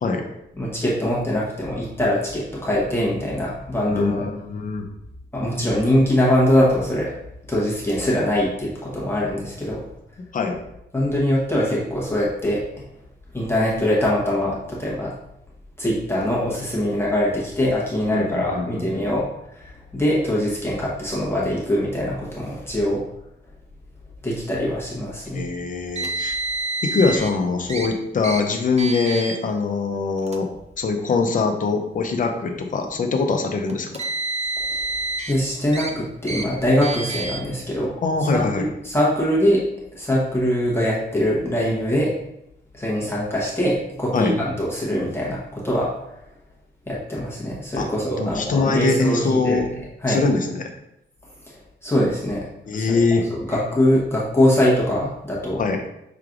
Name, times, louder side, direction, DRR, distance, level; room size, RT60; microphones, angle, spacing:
voice 1, 0.6-4.3 5.3-7.1 7.5-9.8 10.9-12.6 13.3-15.1 15.8-19.2 19.6-23.0 24.2-25.4 34.7-34.8 35.3-37.9 38.3-39.6 39.9-42.1 42.7-45.9 46.9-49.6 50.0-50.2 51.5-52.5 52.7-53.0 53.3-55.6, left 1 dB, 15° left, -6 dB, 0.9 m, -22 dB
voice 2, 3.9-4.8 10.3-10.6 18.1-19.0 25.3-26.4 26.8-30.5 30.8-34.0 38.0-38.7 44.1-44.3 47.8-47.9 48.2-49.7 50.1-50.7 52.7-53.2 55.6-55.8, left 4 dB, 45° left, 4 dB, 0.6 m, -23 dB
Car, 25.9-27.3 27.7-27.9 28.2-28.4 28.8-29.4 30.2-30.4 31.3-31.4 33.7-35.3 35.7-35.9 36.3-36.4 36.8-37.4, right 2 dB, 35° right, 0.5 m, -28 dB
5.8 x 3.2 x 2.5 m, 0.82 s
wide cardioid pair, 145°, 19 cm